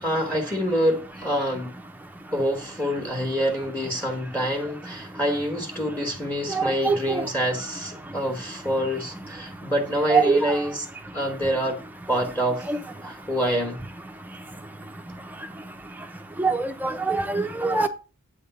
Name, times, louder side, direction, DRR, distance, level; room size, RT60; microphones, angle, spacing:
voice 1, 0.0-1.8 2.3-10.8 11.1-11.8 12.1-12.7 13.0-13.8, equal, 10° left, 1.3 m, -26 dB
voice 2, 6.5-7.2 10.1-10.5 12.7-12.8 16.4-17.9, right 4 dB, 10° right, 0.7 m, -23 dB
8.7 x 3.6 x 6.7 m
head